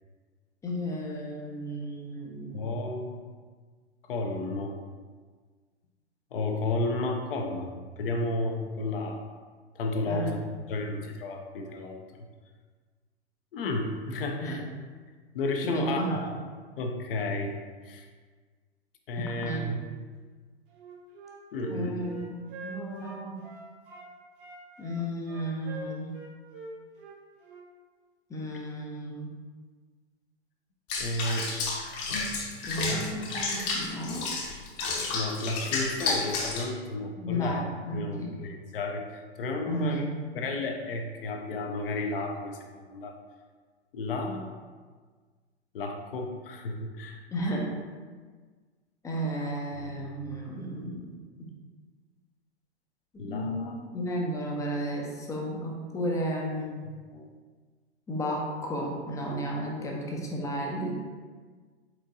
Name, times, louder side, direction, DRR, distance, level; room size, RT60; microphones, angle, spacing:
voice 1, 0.6-2.6 10.0-10.3 14.4-14.7 15.6-16.3 19.4-19.8 21.7-23.5 24.8-26.2 28.3-29.3 32.6-34.3 37.2-38.4 39.7-40.1 47.3-47.7 49.0-51.5 53.1-56.7 58.1-60.9, equal, 10° left, -1 dB, 0.5 m, -33 dB
voice 2, 2.5-3.2 4.1-4.8 6.3-7.7 8.0-9.2 9.7-10.4 10.7-12.0 13.5-14.6 15.3-16.2 16.8-17.6 17.8-18.1 19.1-19.8 21.5-22.1 31.0-31.5 32.8-33.5 35.1-37.6 37.9-40.0 40.3-43.1 43.9-44.6 45.7-47.2 49.7-50.1 53.2-53.8 56.9-57.3, left 2 dB, 55° left, 3 dB, 0.7 m, -32 dB
Wind instrument woodwind instrument, 20.7-24.1 24.4-27.7, right 2 dB, 50° right, 1.0 m, -44 dB
Water / Bathtub (filling or washing), 30.9-36.7, left 3 dB, 40° left, 1.0 m, -31 dB
4.4 x 4.4 x 2.6 m, 1.5 s
figure-of-eight pair, 100°, 34 cm